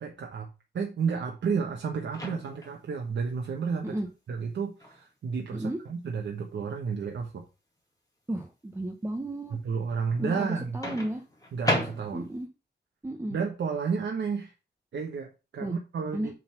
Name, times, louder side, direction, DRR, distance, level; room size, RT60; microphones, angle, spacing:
voice 1, 0.0-3.9 4.3-7.4 9.5-10.8 11.5-12.2 13.3-14.5 14.9-16.3, right 5 dB, 85° right, 1 dB, 1.2 m, -32 dB
Microwave oven, 2.1-2.8 4.8-5.0 10.8-12.4, equal, 20° left, 2.0 m, -32 dB
voice 2, 8.3-9.6 10.2-11.2 12.1-12.5 13.0-13.4 15.6-15.7 16.1-16.3, right 1 dB, 15° right, 4 dB, 0.9 m, -33 dB
7.6 x 4.0 x 5.7 m, 0.30 s
wide cardioid pair, 125°, 18 cm